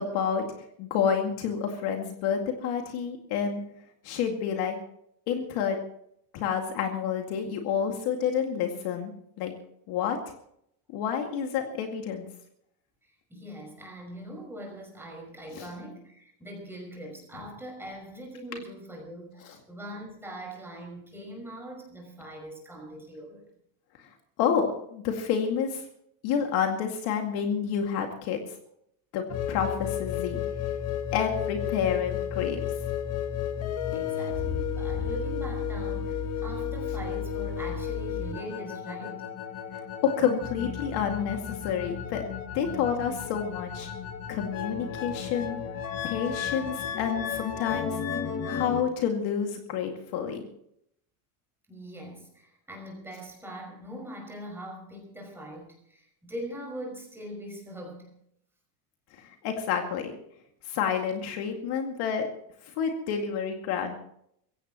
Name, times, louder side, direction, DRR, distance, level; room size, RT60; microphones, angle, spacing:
voice 1, 0.0-3.6 4.0-4.8 5.3-5.8 6.3-9.1 9.4-9.5 9.9-10.2 10.9-12.3 15.6-15.7 19.4-19.6 24.0-24.1 24.4-25.8 26.2-28.4 29.1-30.4 31.1-32.6 40.0-42.2 42.5-43.9 44.3-45.6 46.0-48.0 48.4-50.4 59.1-60.2 60.6-62.3 62.6-64.0, left 7 dB, 55° left, 3 dB, 2.3 m, -29 dB
voice 2, 13.0-23.5 33.9-39.2 51.7-58.1, equal, 5° right, -1 dB, 5.5 m, -42 dB
sound 1, 29.3-48.8, left 8 dB, 30° left, 1.5 m, -33 dB
23.5 x 16.0 x 3.0 m, 0.72 s
cardioid pair, 170°, 48 cm